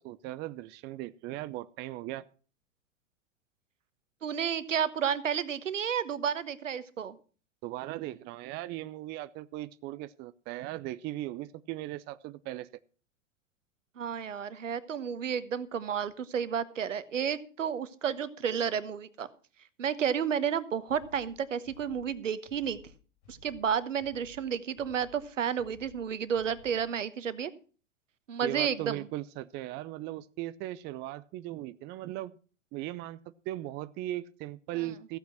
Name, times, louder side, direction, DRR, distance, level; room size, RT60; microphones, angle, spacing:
voice 1, 0.0-2.2 7.6-12.7 28.4-32.3 32.7-33.2 33.5-35.2, right 15 dB, 30° right, 15 dB, 0.5 m, -38 dB
voice 2, 4.2-7.2 14.0-19.3 19.8-22.8 23.3-27.5 28.3-29.1, right 8 dB, 75° right, 14 dB, 1.1 m, -31 dB
sound 1, 20.9-26.9, left 3 dB, 55° left, 5.7 m, -56 dB
14.5 x 8.2 x 5.8 m, 0.39 s
figure-of-eight pair, 95°, 38 cm